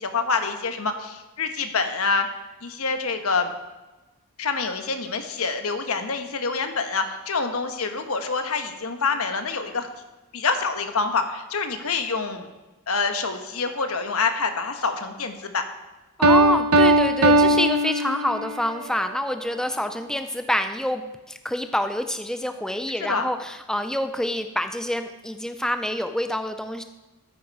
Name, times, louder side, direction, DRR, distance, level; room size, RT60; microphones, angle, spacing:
voice 1, 0.0-2.3 2.6-3.5 4.4-9.9 10.3-12.5 12.9-15.6 23.1-23.3, left 4 dB, 70° left, 7 dB, 1.2 m, -26 dB
voice 2, 16.2-26.8, left 1 dB, 5° left, 8 dB, 0.4 m, -27 dB
Piano, 16.2-18.7, right 1 dB, 80° right, 0.9 m, -18 dB
12.5 x 9.5 x 4.7 m, 1.1 s
head